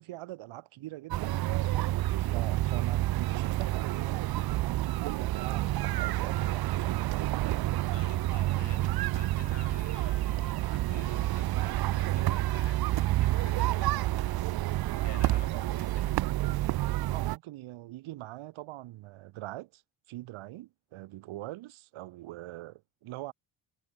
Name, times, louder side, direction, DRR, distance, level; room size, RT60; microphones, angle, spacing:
voice 1, 0.0-1.4 2.2-4.5 4.8-7.3 15.5-15.6 17.1-19.8 20.1-23.3, right 17 dB, 75° right, 2.2 m, -43 dB
sound 1, 1.1-17.4, right 16 dB, 50° right, 0.5 m, -29 dB
voice 2, 2.4-2.8 7.9-16.2, left 10 dB, 60° left, 4.8 m, -51 dB
supercardioid pair, 60°, 49 cm